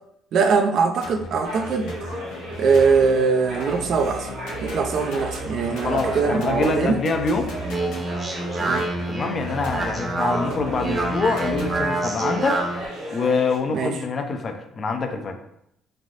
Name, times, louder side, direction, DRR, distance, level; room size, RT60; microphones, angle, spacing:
voice 1, 0.3-1.9 2.6-4.3 4.6-7.0 8.6-8.9 13.7-13.9, right 5 dB, 65° right, 6 dB, 0.3 m, -21 dB
sound 1, 1.0-11.9, equal, 85° left, 0.6 m, -36 dB
sound 2, 1.4-13.6, right 1 dB, 85° right, 1.3 m, -35 dB
voice 2, 5.7-7.5 9.1-12.6 13.1-15.4, left 4 dB, 40° left, 5 dB, 0.4 m, -25 dB
Speech, 7.4-12.8, right 2 dB, 30° right, 0.7 m, -27 dB
3.3 x 2.6 x 2.5 m, 0.77 s
cardioid pair, 95°, 0 cm